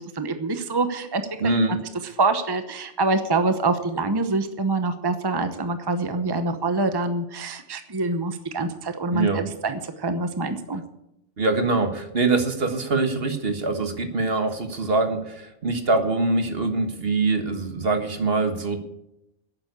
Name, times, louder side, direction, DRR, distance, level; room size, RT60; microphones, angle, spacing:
voice 1, 0.0-1.2 1.7-1.8 2.2-10.8, right 3 dB, 20° right, 8 dB, 0.9 m, -25 dB
voice 2, 1.4-1.8 9.1-9.5 11.4-18.8, right 3 dB, 55° right, 7 dB, 1.7 m, -23 dB
11.5 x 8.9 x 8.4 m, 0.83 s
omnidirectional pair, 1.2 m